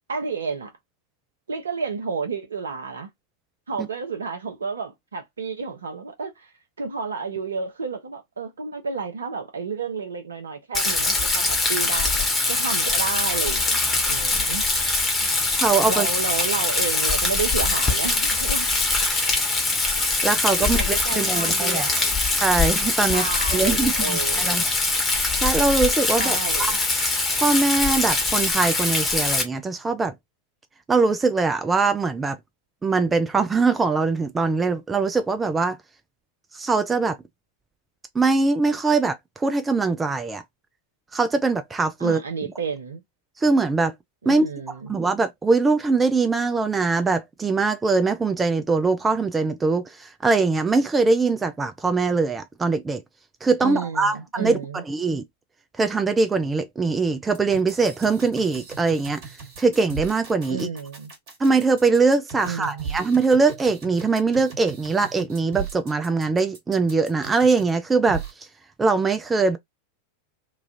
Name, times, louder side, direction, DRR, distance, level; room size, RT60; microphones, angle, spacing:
voice 1, 0.1-0.7 1.5-3.1 3.7-6.5 6.8-14.6 15.2-15.6 15.9-18.7 19.1-19.5 20.6-22.2 23.1-24.6 26.2-26.8 42.0-43.0 44.2-44.9 53.6-54.8 60.5-61.1 62.4-63.0, right 5 dB, 70° right, 0.8 m, -31 dB
Rain, 10.7-29.4, left 3 dB, 20° left, 1.1 m, -23 dB
voice 2, 15.6-16.1 20.2-21.9 22.4-24.6 25.4-26.4 26.7-26.8 27.4-30.1 30.9-32.4 32.8-35.8 36.5-37.2 38.1-40.4 41.1-42.2 43.4-43.9 44.3-44.5 44.9-53.0 53.4-54.6 54.9-55.2 55.8-59.2 59.6-60.7 61.4-68.2 68.8-69.6, right 4 dB, 15° right, 0.4 m, -22 dB
sound 1, 57.3-67.8 68.1-68.3, right 5 dB, 50° right, 1.5 m, -37 dB
3.1 x 2.4 x 2.5 m
figure-of-eight pair, 90°, 0 cm